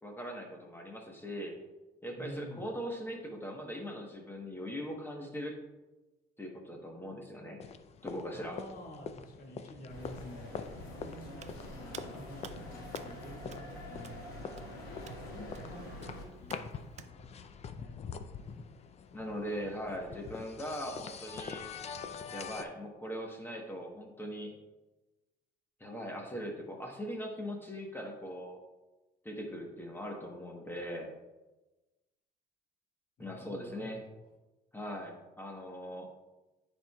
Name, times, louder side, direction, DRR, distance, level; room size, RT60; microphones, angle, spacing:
voice 1, 0.0-1.6 2.0-5.6 6.4-7.6 8.0-8.6 19.1-21.7 22.3-24.5 25.8-28.6 29.2-31.1 33.2-34.0 34.7-36.1, equal, 10° left, 1 dB, 1.1 m, -40 dB
voice 2, 2.2-2.7 8.3-10.6 10.8-14.3 15.0-17.3 17.7-18.0 18.4-18.7 33.2-34.2, equal, 55° left, 0 dB, 1.9 m, -50 dB
sound 1, 7.6-22.6, left 6 dB, 40° left, 0.5 m, -45 dB
sound 2, 9.9-16.2, left 1 dB, 85° left, 2.4 m, -46 dB
Hands, 11.4-17.1, right 9 dB, 45° right, 0.4 m, -53 dB
12.5 x 4.5 x 2.3 m, 1.1 s
cardioid pair, 110°, 17 cm